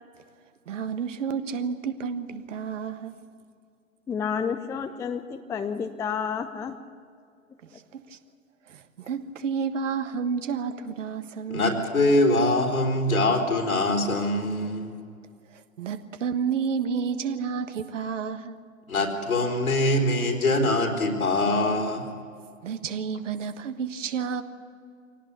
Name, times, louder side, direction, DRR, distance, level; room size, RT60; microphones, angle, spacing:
voice 1, 0.7-3.2 7.9-8.2 8.7-11.7 15.8-18.6 22.6-24.4, right 6 dB, 60° right, 10 dB, 1.5 m, -30 dB
voice 2, 4.1-6.8, left 6 dB, 5° left, 8 dB, 0.5 m, -30 dB
voice 3, 11.5-14.9 18.9-22.1, left 2 dB, 75° left, 2 dB, 4.1 m, -23 dB
24.0 x 18.0 x 8.3 m, 2.2 s
figure-of-eight pair, 100°, 42 cm